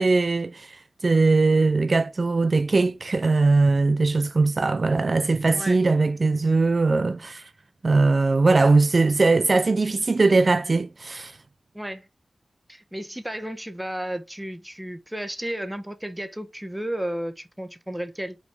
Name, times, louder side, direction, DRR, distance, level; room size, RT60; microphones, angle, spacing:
voice 1, 0.0-7.5 7.8-11.4, right 3 dB, 50° right, 0.5 m, -20 dB
voice 2, 11.7-12.1 12.7-18.4, right 1 dB, 10° right, 1.3 m, -33 dB
5.8 x 4.1 x 4.6 m
cardioid pair, 55°, 0 cm